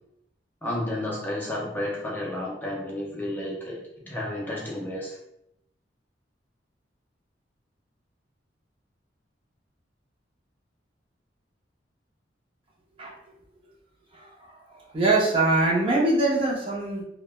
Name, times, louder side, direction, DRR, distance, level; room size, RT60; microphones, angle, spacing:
voice 1, 0.6-5.2, left 1 dB, 10° left, -4 dB, 0.4 m, -32 dB
voice 2, 14.1-17.0, right 2 dB, 30° right, -4 dB, 0.6 m, -24 dB
3.1 x 2.1 x 2.2 m, 0.81 s
head